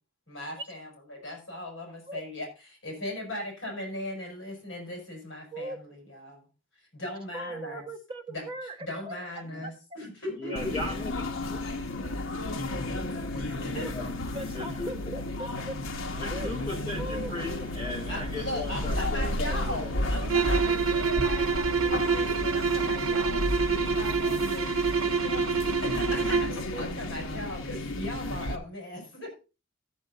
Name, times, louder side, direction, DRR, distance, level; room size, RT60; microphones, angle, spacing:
voice 1, 0.3-6.5 6.8-7.8 8.3-8.4 8.8-10.8 13.0-13.9 18.1-29.3, left 1 dB, 60° left, 1 dB, 6.2 m, -38 dB
voice 2, 7.3-8.8 9.1-9.2 9.6-9.7 13.7-13.9 14.3-15.7 16.3-16.5 17.0-17.3 26.7-26.9, right 1 dB, 25° right, 4 dB, 1.7 m, -38 dB
voice 3, 10.4-11.6 13.9-14.1 14.4-15.1 16.2-19.9, left 2 dB, 25° left, -1 dB, 5.1 m, -37 dB
sound 1, 10.6-28.6, left 1 dB, 90° left, 1.1 m, -33 dB
sound 2, 16.5-23.1, right 1 dB, 5° right, 2.1 m, -49 dB
sound 3, 20.2-26.6, right 5 dB, 85° right, 0.7 m, -27 dB
13.5 x 7.5 x 4.0 m, 0.31 s
head